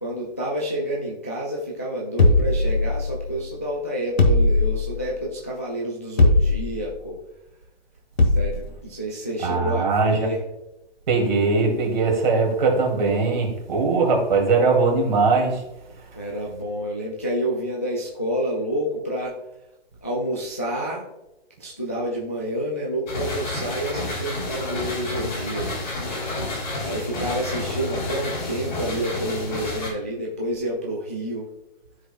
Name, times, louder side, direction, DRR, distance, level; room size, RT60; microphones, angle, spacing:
voice 1, 0.0-7.2 8.3-10.4 16.2-19.3 20.0-21.0 21.6-25.9 26.8-31.5, right 1 dB, 15° left, -4 dB, 0.3 m, -29 dB
sound 1, 2.2-3.3 4.2-5.1 6.2-6.9 8.2-8.7, left 2 dB, 90° left, 1.5 m, -19 dB
voice 2, 9.4-10.3 11.1-15.6, right 4 dB, 45° right, 0 dB, 2.3 m, -20 dB
sound 2, 23.1-29.9, left 2 dB, 50° left, 2.7 m, -30 dB
13.0 x 4.9 x 2.2 m, 0.91 s
hypercardioid pair, 160°, 31 cm